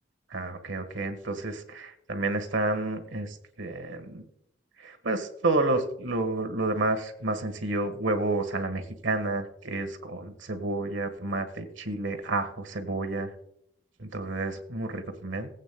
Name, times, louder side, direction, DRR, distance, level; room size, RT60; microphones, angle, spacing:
voice 1, 0.3-4.2 4.8-13.3 14.0-15.5, right 2 dB, 75° right, 7 dB, 1.4 m, -30 dB
19.0 x 8.4 x 2.2 m, 0.73 s
head